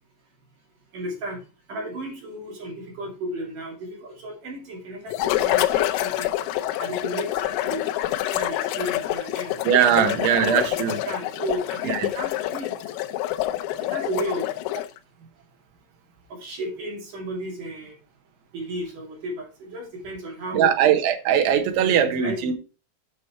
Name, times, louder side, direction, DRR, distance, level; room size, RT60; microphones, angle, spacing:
voice 1, 0.9-1.4 1.7-6.3 6.8-7.8 8.3-9.5 9.9-10.0 10.5-12.7 13.9-14.5 16.3-18.0 18.5-20.7 21.8-22.5, right 1 dB, 50° right, 3.6 m, -33 dB
sound 1, 5.1-15.0, left 14 dB, 90° left, 3.3 m, -27 dB
voice 2, 9.6-11.0 11.8-12.1 20.5-22.5, right 9 dB, 75° right, 3.3 m, -20 dB
8.7 x 6.3 x 4.4 m
omnidirectional pair, 5.6 m